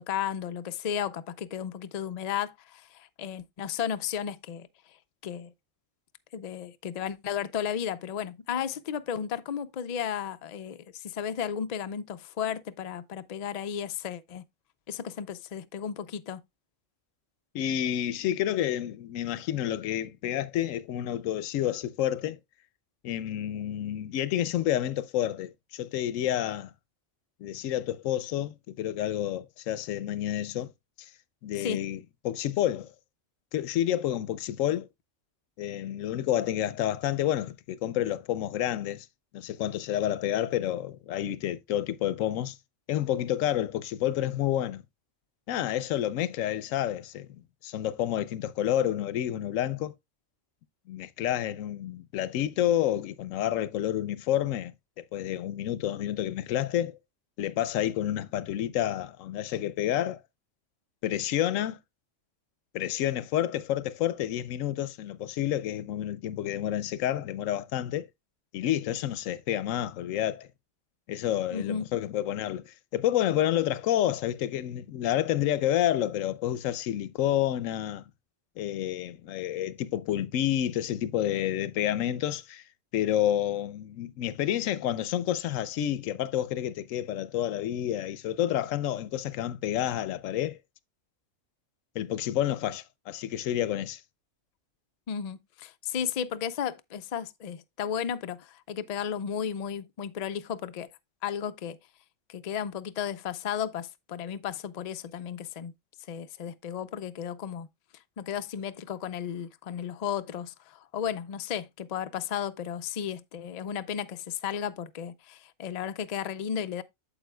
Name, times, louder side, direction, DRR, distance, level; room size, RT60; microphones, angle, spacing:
voice 1, 0.0-5.0 5.2-5.5 6.3-14.4 14.9-16.4 31.6-31.8 71.5-71.8 95.1-100.9 101.2-101.8 102.3-105.7 106.1-107.7 108.2-116.8, left 8 dB, 70° left, 0.3 m, -34 dB
voice 2, 17.5-22.4 23.0-26.7 27.4-30.7 31.0-31.1 31.4-32.0 32.2-32.9 33.5-34.9 35.6-39.1 39.3-42.6 42.9-44.8 45.5-47.3 47.6-49.9 50.9-57.0 57.4-60.2 61.0-61.8 62.7-68.1 68.5-70.5 71.1-78.0 78.6-82.6 82.9-90.6 91.9-94.0, left 12 dB, 90° left, 1.0 m, -29 dB
8.9 x 7.2 x 2.2 m
omnidirectional pair, 1.3 m